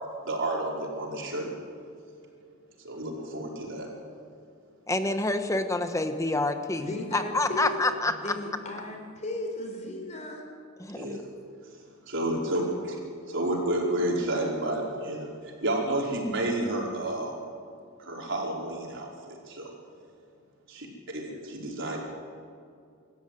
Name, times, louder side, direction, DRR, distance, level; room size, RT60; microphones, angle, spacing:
voice 1, 0.2-1.5 2.8-3.9 11.0-11.2 12.1-12.9 13.3-15.3 15.6-17.4 18.1-19.3 20.7-20.9 21.1-21.2 21.5-22.0, right 1 dB, 60° right, -1 dB, 5.0 m, -30 dB
voice 2, 4.9-6.9 7.1-8.2 10.8-11.2, left 2 dB, 15° left, 7 dB, 1.3 m, -27 dB
voice 3, 6.8-7.7 8.1-10.4, left 1 dB, 35° left, 3 dB, 4.2 m, -36 dB
25.5 x 14.0 x 9.3 m, 2.3 s
head